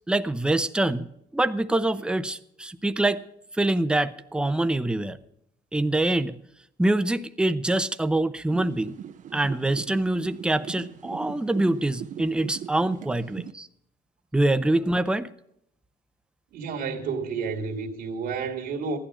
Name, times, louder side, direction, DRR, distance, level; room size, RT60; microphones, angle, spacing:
voice 1, 0.1-3.2 3.6-5.2 5.7-6.4 6.8-8.9 9.3-13.7 14.3-15.3, right 1 dB, 5° right, 0.7 m, -25 dB
sound 1, 8.5-13.5, right 9 dB, 50° right, 0.7 m, -40 dB
voice 2, 16.5-19.0, right 5 dB, 70° right, 2.3 m, -30 dB
15.5 x 11.5 x 4.9 m
cardioid pair, 110°, 17 cm